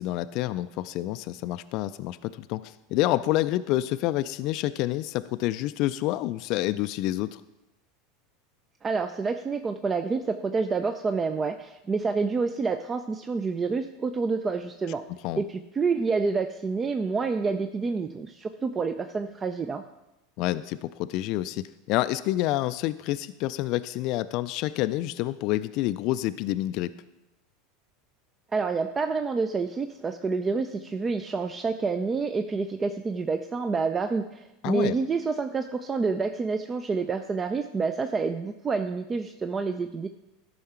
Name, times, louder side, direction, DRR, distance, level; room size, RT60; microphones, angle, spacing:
voice 1, 0.0-7.4 15.2-15.4 20.4-26.9 34.6-34.9, left 15 dB, 55° left, 12 dB, 0.3 m, -28 dB
voice 2, 8.8-15.0 15.4-19.8 28.5-40.1, right 4 dB, 25° right, 8 dB, 0.5 m, -28 dB
13.5 x 5.6 x 4.4 m, 0.98 s
hypercardioid pair, 85°, 0 cm